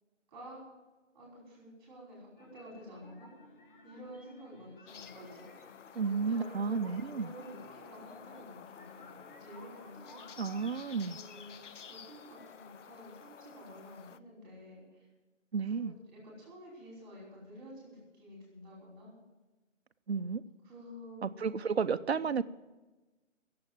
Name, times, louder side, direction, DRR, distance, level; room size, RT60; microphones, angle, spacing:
voice 1, 0.3-0.6 1.1-3.3 3.8-5.7 6.0-10.5 11.0-11.5 11.9-15.0 15.6-19.1 20.6-21.2, equal, 20° right, -5 dB, 5.1 m, -50 dB
sound 1, 2.4-13.0, left 2 dB, 40° left, 1.4 m, -57 dB
sound 2, 4.9-14.2, left 7 dB, 70° left, 0.6 m, -52 dB
voice 2, 5.9-7.3 10.4-11.2 15.5-15.9 20.1-20.4 21.2-22.4, right 5 dB, 55° right, 11 dB, 0.7 m, -32 dB
15.0 x 7.8 x 9.2 m, 1.2 s
hypercardioid pair, 175°, 38 cm